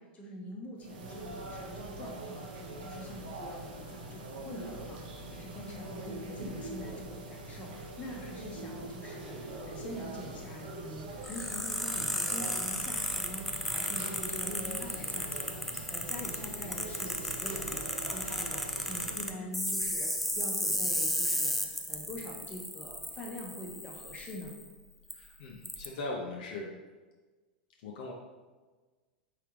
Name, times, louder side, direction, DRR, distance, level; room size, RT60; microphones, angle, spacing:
voice 1, 0.0-5.0 5.3-24.5, left 1 dB, 25° left, -1 dB, 1.0 m, -44 dB
sound 1, 0.8-19.4, right 2 dB, 65° right, 0.8 m, -43 dB
sound 2, 11.2-24.6 25.1-25.2 25.6-25.9, equal, ahead, 0.4 m, -34 dB
voice 2, 25.1-26.7 27.8-28.1, left 2 dB, 60° left, -1 dB, 0.7 m, -40 dB
4.7 x 3.5 x 3.2 m, 1.3 s
figure-of-eight pair, 95°, 5 cm